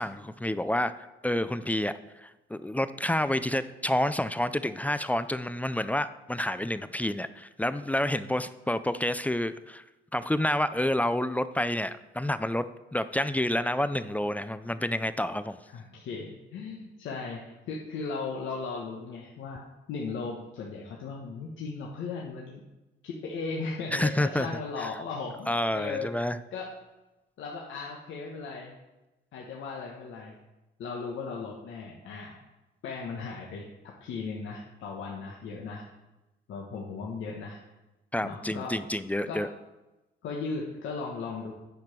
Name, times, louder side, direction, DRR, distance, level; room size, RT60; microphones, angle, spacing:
voice 1, 0.0-1.9 2.2-9.8 10.1-15.6 23.9-24.5 24.8-24.9 25.5-26.4 38.1-39.5, left 1 dB, 5° left, 13 dB, 0.4 m, -29 dB
voice 2, 15.7-22.6 23.0-26.1 26.5-26.7 27.4-28.7 29.3-30.4 30.8-32.4 32.8-35.8 36.5-37.6 38.2-38.7 39.2-39.4 40.2-41.5, left 4 dB, 80° left, -2 dB, 1.2 m, -37 dB
9.3 x 5.0 x 5.9 m, 1.0 s
cardioid pair, 90°, 20 cm